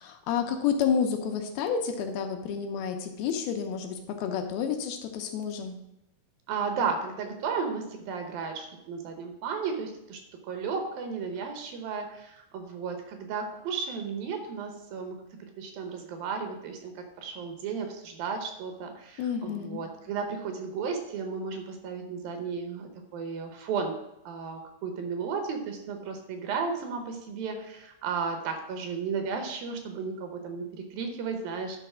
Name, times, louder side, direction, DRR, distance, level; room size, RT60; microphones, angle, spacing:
voice 1, 0.0-5.8 19.2-19.8, left 7 dB, 80° left, 5 dB, 2.4 m, -30 dB
voice 2, 6.5-15.2 15.6-24.0 24.3-31.8, right 5 dB, 75° right, 5 dB, 2.5 m, -34 dB
11.0 x 3.9 x 6.0 m, 0.84 s
omnidirectional pair, 4.6 m